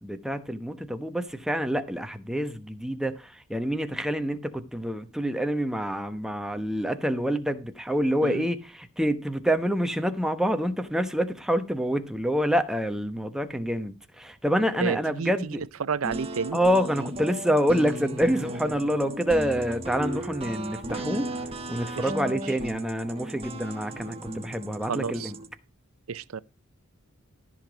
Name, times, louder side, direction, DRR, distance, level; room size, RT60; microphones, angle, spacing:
voice 1, 0.0-8.6 9.0-15.6 16.5-21.3 21.7-25.3, equal, 5° right, 0.9 m, -27 dB
voice 2, 14.7-16.6 21.9-22.6 24.8-25.3 26.1-26.4, right 5 dB, 90° right, 0.6 m, -32 dB
sound 1, 16.0-25.5, right 1 dB, 30° right, 1.3 m, -35 dB
14.0 x 5.9 x 5.0 m
head